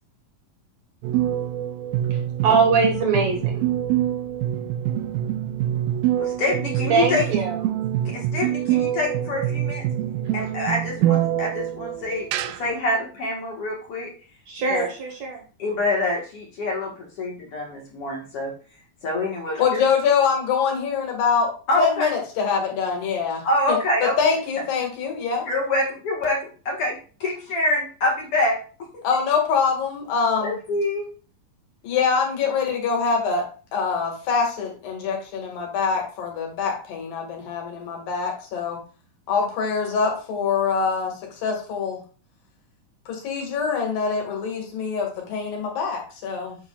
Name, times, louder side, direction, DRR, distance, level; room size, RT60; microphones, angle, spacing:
sound 1, 1.0-12.7, right 12 dB, 85° right, 2.3 m, -25 dB
voice 1, 2.1-3.6 6.9-7.6 14.5-15.4, right 4 dB, 60° right, 1 dB, 2.0 m, -22 dB
voice 2, 6.1-7.3 8.1-9.8 10.3-12.3 12.6-14.1 14.5-14.9 15.6-18.5 19.0-19.8 21.7-22.1 23.4-24.2 25.4-28.6 30.4-31.1, left 2 dB, 55° left, 0 dB, 2.0 m, -26 dB
voice 3, 19.6-25.5 29.0-30.5 31.8-33.4 33.7-38.8 39.3-42.0 43.1-46.6, left 5 dB, 80° left, 1 dB, 3.4 m, -24 dB
8.5 x 5.7 x 2.3 m, 0.37 s
omnidirectional pair, 3.9 m